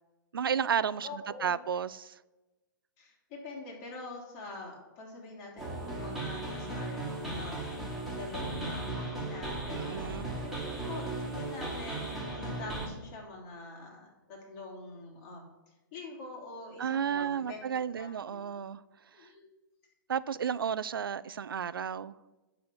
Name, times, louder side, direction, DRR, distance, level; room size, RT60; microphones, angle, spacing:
voice 1, 0.3-2.2 9.7-10.4 16.8-18.8 20.1-22.1, right 7 dB, 90° right, 17 dB, 0.4 m, -32 dB
voice 2, 1.0-1.6 3.0-7.6 8.1-15.5 15.9-17.7 17.9-18.6 19.1-19.5, left 3 dB, 40° left, -1 dB, 3.2 m, -45 dB
sound 1, 5.6-12.9, right 2 dB, ahead, 2.9 m, -36 dB
10.5 x 4.2 x 7.0 m, 1.1 s
hypercardioid pair, 130°, 11 cm